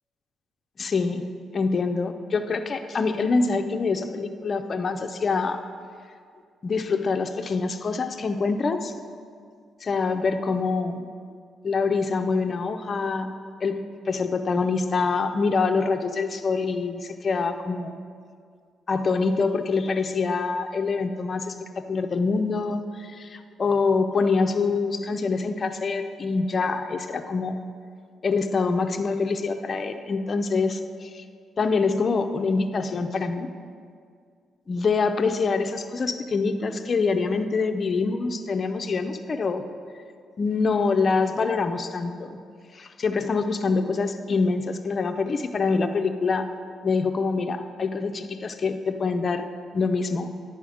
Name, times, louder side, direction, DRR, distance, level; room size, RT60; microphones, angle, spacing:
voice 1, 0.8-1.2 1.5-5.6 6.6-8.9 9.8-11.1 11.6-13.3 13.6-17.9 18.9-27.6 28.2-31.2 31.6-33.5 34.7-39.6 40.4-42.4 42.7-46.5 46.8-49.5 49.7-50.3, left 4 dB, 45° left, 7 dB, 0.5 m, -25 dB
10.0 x 4.3 x 4.9 m, 2.1 s
supercardioid pair, 65°, 0 cm